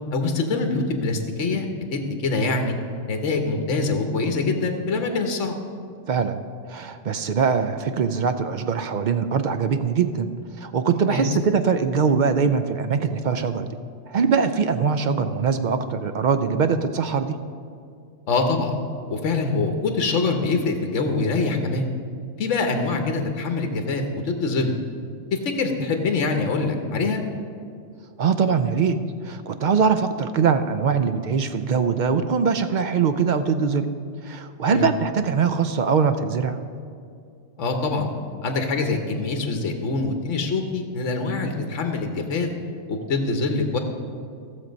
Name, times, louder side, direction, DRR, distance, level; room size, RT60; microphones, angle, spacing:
voice 1, 0.1-2.7 3.1-5.5 11.1-11.3 18.3-18.7 19.1-21.9 22.4-24.7 25.3-27.2 34.7-34.9 37.6-38.1 38.4-42.5 42.9-43.8, left 3 dB, 75° left, 5 dB, 1.3 m, -24 dB
voice 2, 6.1-6.4 6.7-10.3 10.6-13.7 14.1-17.4 28.2-33.9 34.2-36.6, right 6 dB, 60° right, 9 dB, 0.5 m, -22 dB
15.0 x 6.8 x 5.2 m, 2.4 s
omnidirectional pair, 1.3 m